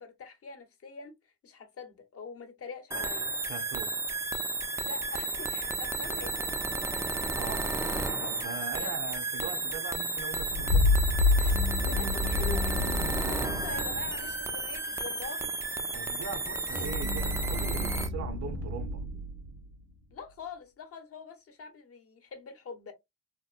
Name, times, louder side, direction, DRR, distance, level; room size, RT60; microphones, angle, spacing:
voice 1, 0.0-3.3 4.7-6.5 8.7-8.9 11.8-15.5 20.1-22.9, left 4 dB, 50° left, 0.8 m, -44 dB
sound 1, 2.9-18.1, right 2 dB, 10° right, 0.3 m, -33 dB
voice 2, 3.5-3.9 7.3-7.7 8.2-11.0 15.9-19.0, right 7 dB, 60° right, 0.6 m, -40 dB
sound 2, 10.3-13.1, left 3 dB, 85° left, 0.7 m, -26 dB
sound 3, 11.4-14.7 16.7-20.0, left 1 dB, 85° right, 1.3 m, -35 dB
2.9 x 2.1 x 2.3 m
cardioid pair, 90°, 30 cm